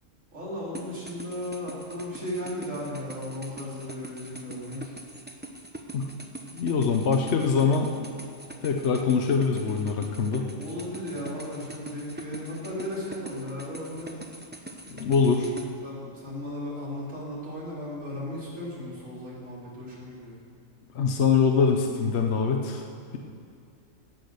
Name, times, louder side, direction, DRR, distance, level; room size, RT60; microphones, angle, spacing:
voice 1, 0.3-5.0 10.5-14.2 15.8-20.4, left 1 dB, 85° right, -7 dB, 3.7 m, -36 dB
sound 1, 0.7-15.7, right 2 dB, 10° right, 0.6 m, -43 dB
voice 2, 6.5-7.9 8.6-10.5 14.9-15.5 20.9-22.8, left 5 dB, 65° left, 3 dB, 1.0 m, -23 dB
17.0 x 6.2 x 6.6 m, 2.5 s
omnidirectional pair, 1.3 m